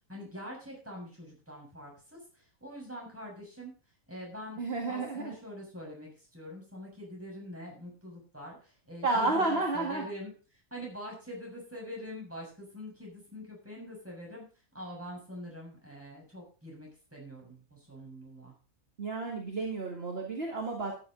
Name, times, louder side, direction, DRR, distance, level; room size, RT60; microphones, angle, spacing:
voice 1, 0.1-3.7 4.1-4.6 4.9-10.3 10.7-14.5 14.7-18.5, equal, 10° right, -2 dB, 6.9 m, -44 dB
voice 2, 4.6-5.4 9.0-10.1 19.0-21.0, right 3 dB, 45° right, 0 dB, 2.3 m, -31 dB
13.5 x 10.0 x 4.0 m, 0.37 s
omnidirectional pair, 1.4 m